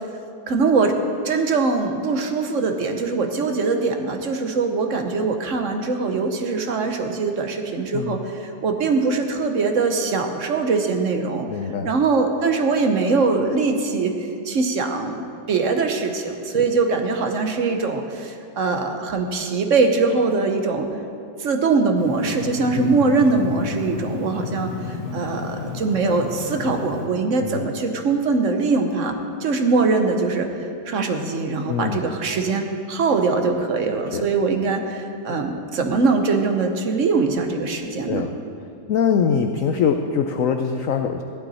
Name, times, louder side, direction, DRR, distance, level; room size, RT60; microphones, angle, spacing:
voice 1, 0.5-1.0 1.2-11.5 11.8-20.9 21.4-38.3, right 4 dB, 50° right, 5 dB, 1.0 m, -22 dB
voice 2, 11.5-11.9 22.7-23.0 27.4-27.6 31.7-32.0 34.1-34.3 38.1-38.3 38.9-41.2, left 7 dB, 85° left, 6 dB, 0.7 m, -23 dB
sound 1, 22.0-27.1, left 4 dB, 30° left, 1.9 m, -32 dB
15.0 x 11.5 x 4.2 m, 2.6 s
omnidirectional pair, 2.1 m